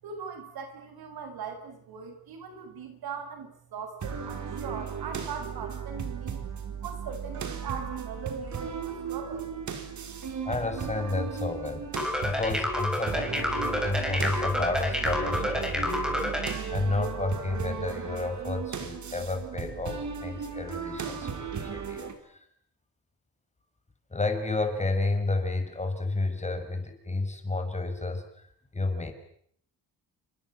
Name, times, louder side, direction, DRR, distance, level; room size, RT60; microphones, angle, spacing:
voice 1, 0.0-6.4 6.8-9.5, right 5 dB, 85° right, 8 dB, 7.2 m, -40 dB
sound 1, 4.0-22.1, right 6 dB, 50° right, 4.8 m, -36 dB
voice 2, 10.4-11.9 12.2-16.2 16.7-22.4 24.1-28.3 28.7-29.1, left 3 dB, 20° left, 7 dB, 6.2 m, -31 dB
sound 2, 12.0-16.6, left 1 dB, ahead, 6.7 m, -29 dB
30.0 x 25.5 x 7.7 m, 0.65 s
cardioid pair, 120°, 36 cm